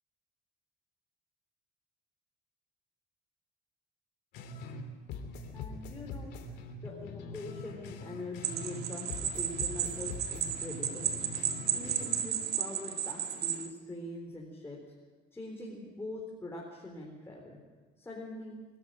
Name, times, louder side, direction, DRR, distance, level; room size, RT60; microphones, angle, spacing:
sound 1, 4.3-4.8 5.1-8.8 9.1-12.3, left 3 dB, 80° left, 2.9 m, -43 dB
voice 1, 5.5-6.3 6.8-11.1 11.7-14.8 15.3-17.6 18.0-18.6, left 1 dB, 15° left, -2 dB, 4.1 m, -43 dB
sound 2, 8.4-13.7, right 8 dB, 75° right, 2.0 m, -33 dB
24.0 x 13.0 x 9.0 m, 1.4 s
cardioid pair, 110°, 17 cm